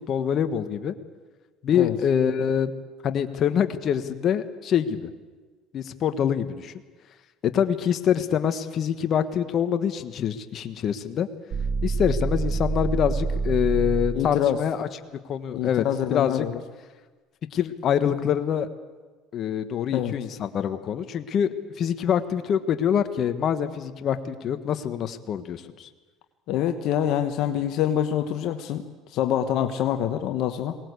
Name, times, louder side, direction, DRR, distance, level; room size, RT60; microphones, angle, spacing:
voice 1, 0.1-0.9 1.6-2.7 3.0-5.1 5.7-6.7 7.4-11.3 11.8-14.9 15.3-16.4 17.5-18.7 19.3-25.9, left 8 dB, 50° left, 9 dB, 1.3 m, -25 dB
sound 1, 11.5-14.3, right 4 dB, 40° right, 1.5 m, -26 dB
voice 2, 14.1-14.6 15.5-16.6 19.9-20.1 26.5-30.8, left 10 dB, 65° left, 7 dB, 1.1 m, -26 dB
21.5 x 18.5 x 8.2 m, 1.4 s
supercardioid pair, 105°, 0 cm